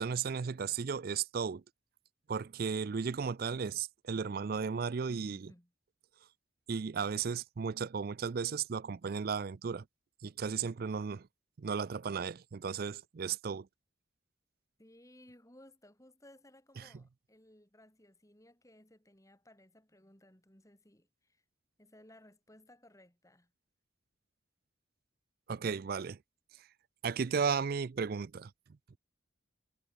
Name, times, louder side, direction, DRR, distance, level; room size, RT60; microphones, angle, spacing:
voice 1, 0.0-1.6 2.3-5.5 6.7-9.8 10.2-11.3 11.6-13.7 16.8-16.9 25.5-26.2 27.0-28.5, right 6 dB, 50° right, 0.4 m, -35 dB
voice 2, 5.1-5.7 14.8-21.4 21.8-23.5, left 1 dB, 15° left, 4.3 m, -60 dB
head